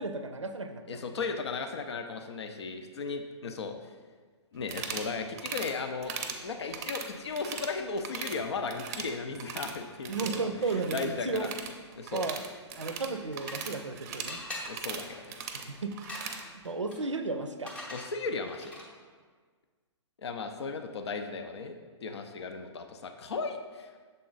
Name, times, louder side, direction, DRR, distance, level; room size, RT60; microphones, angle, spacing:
voice 1, 0.0-1.2 10.1-11.5 12.1-12.4 12.7-14.4 15.5-16.0 16.6-17.8, right 3 dB, 85° right, 9 dB, 0.5 m, -34 dB
voice 2, 0.9-3.8 4.5-6.1 6.4-11.5 12.0-12.3 14.7-15.3 17.9-18.7 20.2-24.1, left 4 dB, 65° left, 6 dB, 0.5 m, -36 dB
sound 1, 4.6-5.1 5.4-5.7 6.0-6.4 6.7-7.7 8.0-8.4 8.7-9.8 10.0-16.4, right 6 dB, 35° right, 0.5 m, -39 dB
sound 2, 13.1-13.9 14.3-19.1, left 1 dB, 5° left, 0.6 m, -45 dB
6.7 x 3.8 x 3.8 m, 1.5 s
figure-of-eight pair, 120°, 15 cm